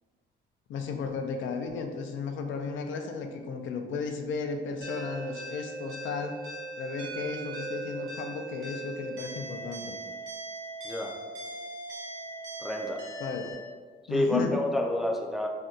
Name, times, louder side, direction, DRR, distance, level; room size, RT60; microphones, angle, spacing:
voice 1, 0.7-6.4 6.8-10.0 13.2-13.4 14.1-14.5, left 5 dB, 75° left, 4 dB, 0.4 m, -34 dB
sound 1, 4.8-13.5, right 2 dB, 85° right, 1.0 m, -39 dB
voice 2, 12.6-13.0 14.1-15.5, left 1 dB, ahead, 1 dB, 0.3 m, -29 dB
2.6 x 2.2 x 3.6 m, 1.5 s
cardioid pair, 90°, 20 cm